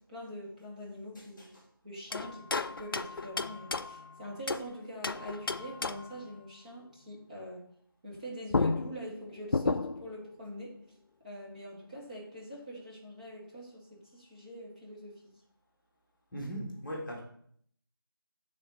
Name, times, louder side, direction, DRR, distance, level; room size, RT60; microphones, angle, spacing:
voice 1, 0.1-1.5 1.8-7.7 8.0-10.8 11.2-15.3, equal, 20° right, -6 dB, 0.8 m, -44 dB
voice 2, 1.1-1.5 16.3-17.2, equal, 10° left, -8 dB, 1.3 m, -39 dB
sound 1, 2.1-4.7 5.0-6.2 8.1-8.2 8.5-10.1, left 3 dB, 65° left, 0.4 m, -33 dB
7.8 x 3.5 x 3.8 m, 0.63 s
figure-of-eight pair, 170°, 12 cm